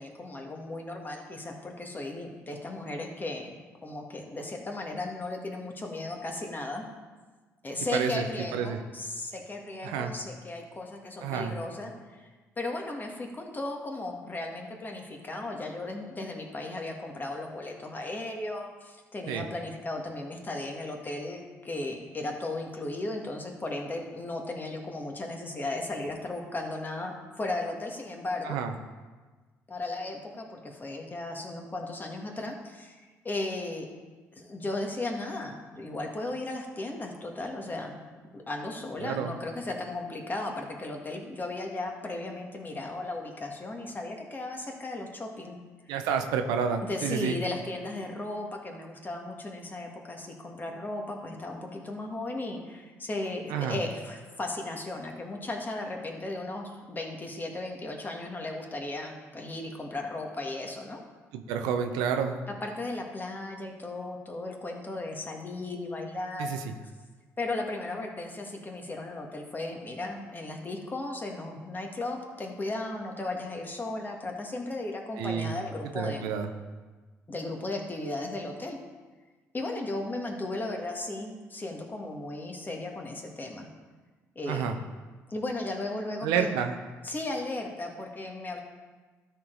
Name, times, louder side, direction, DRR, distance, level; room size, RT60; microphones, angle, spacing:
voice 1, 0.0-6.8 7.6-12.3 12.6-28.6 29.7-33.0 33.2-33.9 34.4-38.0 38.3-45.6 45.9-46.0 46.8-61.0 62.5-66.5 67.4-76.3 77.3-78.8 79.5-83.7 84.3-84.9 85.3-86.5 87.0-88.6, left 2 dB, 30° left, 1 dB, 1.7 m, -36 dB
voice 2, 7.9-8.2 8.5-8.8 9.8-10.1 11.2-11.6 19.3-19.4 28.4-28.7 39.0-39.3 45.9-47.3 53.5-53.8 61.3-62.4 66.4-66.6 75.2-75.5 75.9-76.5 84.5-84.7 86.2-86.7, right 7 dB, 85° right, 6 dB, 0.7 m, -29 dB
12.5 x 4.6 x 3.9 m, 1.3 s
supercardioid pair, 60°, 7 cm